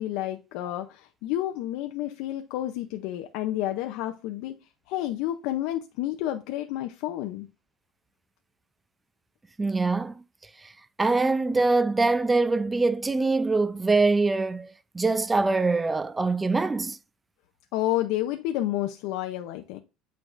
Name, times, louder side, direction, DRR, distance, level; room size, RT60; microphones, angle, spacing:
voice 1, 0.0-4.5 4.9-7.5 17.7-19.8, left 14 dB, 75° left, 0.6 m, -30 dB
voice 2, 9.6-10.2 10.6-10.7 11.0-17.0, right 3 dB, 15° right, 0.4 m, -24 dB
8.5 x 4.6 x 2.6 m
cardioid pair, 135°, 0 cm